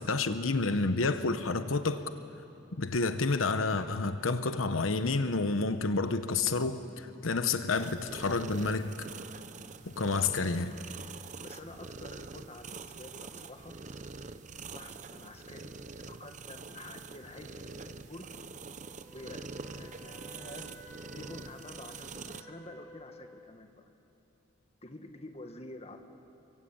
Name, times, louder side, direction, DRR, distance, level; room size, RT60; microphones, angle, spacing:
voice 1, 0.0-2.0 2.7-8.9 10.0-10.7, left 3 dB, 90° left, 9 dB, 1.0 m, -29 dB
sound 1, 7.7-22.4, right 4 dB, 40° right, 0.8 m, -45 dB
voice 2, 11.4-13.8 14.7-18.3 19.1-23.9 24.8-26.0, left 2 dB, 30° left, 5 dB, 1.9 m, -49 dB
Wind instrument woodwind instrument, 18.8-23.5, equal, 5° left, 4.0 m, -54 dB
28.5 x 24.0 x 8.8 m, 2.8 s
head